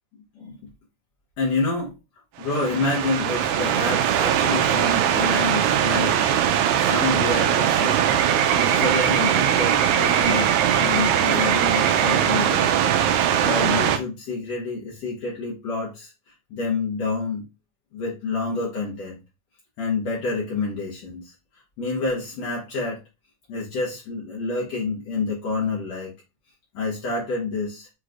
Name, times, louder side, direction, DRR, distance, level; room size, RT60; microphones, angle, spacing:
voice 1, 1.4-1.9 2.4-8.0 8.5-12.8 13.1-17.5 17.9-19.2 19.8-21.3 21.8-23.0 23.5-26.1 26.7-27.9, left 3 dB, 65° left, -5 dB, 2.2 m, -28 dB
sound 1, 2.4-14.0, right 9 dB, 85° right, 2.0 m, -20 dB
6.6 x 3.2 x 2.4 m, 0.26 s
omnidirectional pair, 3.4 m